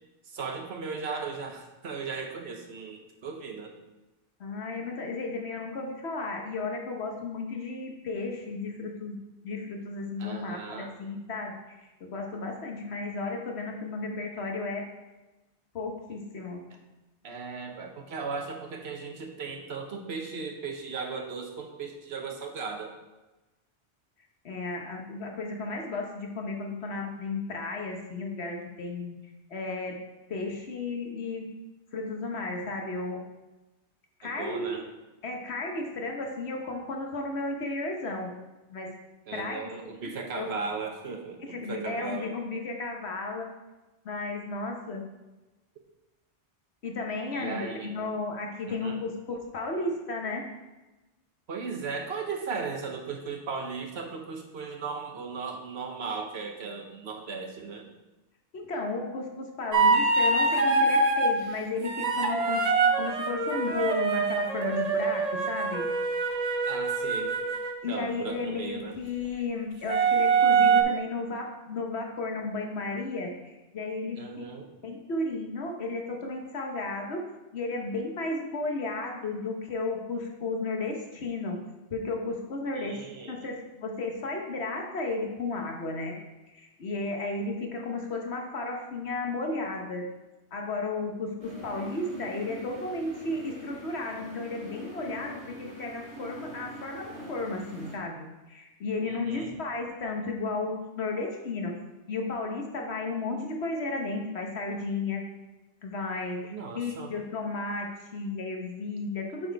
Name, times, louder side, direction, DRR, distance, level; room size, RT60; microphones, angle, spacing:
voice 1, 0.3-3.7 10.2-11.0 16.7-16.8 17.2-22.9 34.2-34.8 39.3-42.3 47.3-47.9 48.7-49.0 51.5-57.9 66.7-67.3 67.9-69.0 74.1-74.7 82.8-83.4 99.1-99.5 106.5-107.1, right 5 dB, 65° right, 3 dB, 1.1 m, -37 dB
voice 2, 4.4-9.2 9.4-14.9 15.7-16.6 24.4-29.2 29.5-30.0 30.3-31.5 31.9-33.2 34.2-34.8 35.2-38.3 38.7-38.9 39.3-39.7 40.3-40.5 41.5-43.5 44.0-45.0 46.8-50.4 58.5-62.7 63.0-65.9 67.8-74.5 74.8-77.3 77.5-81.6 81.9-86.2 86.5-90.1 90.5-101.7 102.1-105.2 105.8-109.5, left 3 dB, 70° left, 2 dB, 1.3 m, -34 dB
sound 1, 59.7-61.3 61.8-67.7 69.9-70.8, right 4 dB, 40° right, 0.7 m, -24 dB
sound 2, 91.4-98.0, equal, 5° right, 2.1 m, -43 dB
7.4 x 4.3 x 4.6 m, 1.1 s
omnidirectional pair, 1.2 m